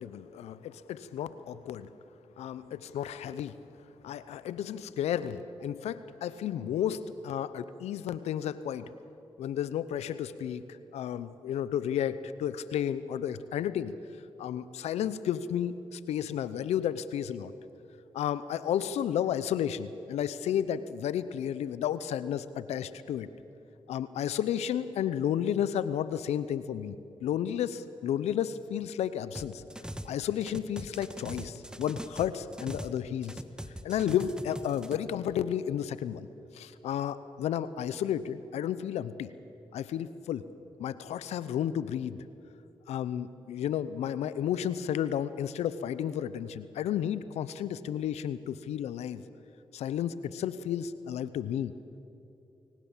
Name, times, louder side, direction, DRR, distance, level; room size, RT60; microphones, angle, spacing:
voice 1, 0.0-1.9 2.4-3.6 4.0-8.9 9.4-14.0 14.4-17.5 18.1-23.3 23.9-29.6 30.0-33.4 33.8-36.3 36.5-39.3 39.7-40.4 40.8-42.2 42.9-49.2 49.7-51.7, left 9 dB, 85° left, 15 dB, 0.7 m, -32 dB
sound 1, 29.3-30.1 30.4-33.0 33.2-35.0, right 1 dB, 5° right, 1.5 m, -41 dB
23.5 x 18.5 x 7.4 m, 2.8 s
supercardioid pair, 45°, 11 cm